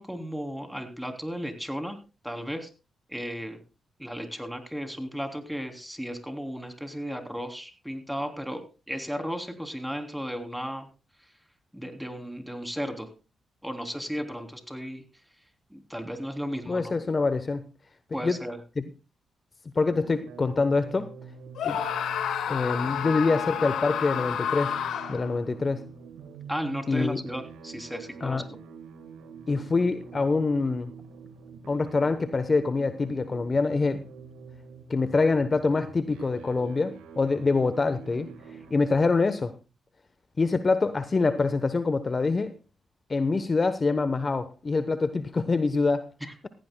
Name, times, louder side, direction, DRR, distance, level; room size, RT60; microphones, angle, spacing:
voice 1, 0.0-2.0 2.2-2.7 3.1-3.6 4.0-10.9 11.7-13.1 13.6-15.0 15.7-16.9 18.1-18.6 26.5-28.4 46.2-46.3, equal, 5° right, 6 dB, 3.1 m, -35 dB
voice 2, 16.7-17.6 18.2-18.4 18.8-18.9 19.7-21.1 21.6-21.8 22.5-24.8 25.1-25.8 26.9-27.2 28.2-28.4 29.5-30.9 31.7-34.0 34.9-38.3 38.7-39.5 40.4-42.5 43.1-46.1, left 3 dB, 40° left, 11 dB, 0.9 m, -25 dB
sound 1, 19.9-38.7, right 6 dB, 90° right, 1.6 m, -46 dB
Screaming, 21.6-25.4, left 9 dB, 80° left, 1.7 m, -30 dB
17.0 x 15.5 x 2.2 m, 0.31 s
supercardioid pair, 45°, 0 cm